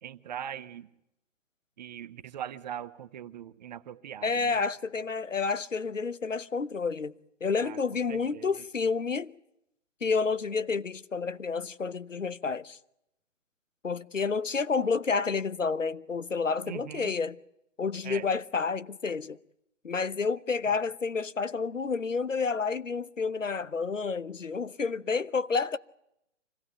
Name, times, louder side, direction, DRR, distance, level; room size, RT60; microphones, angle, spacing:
voice 1, 0.0-0.9 1.8-4.6 7.6-7.8 8.1-8.5 16.6-17.1 18.0-18.3 20.7-20.8, right 10 dB, 35° right, 0.9 m, -41 dB
voice 2, 4.2-7.1 7.4-9.3 10.0-12.8 13.8-17.4 17.8-19.4 19.8-25.8, left 5 dB, 85° left, 1.0 m, -30 dB
25.5 x 16.5 x 8.9 m
figure-of-eight pair, 130°, 37 cm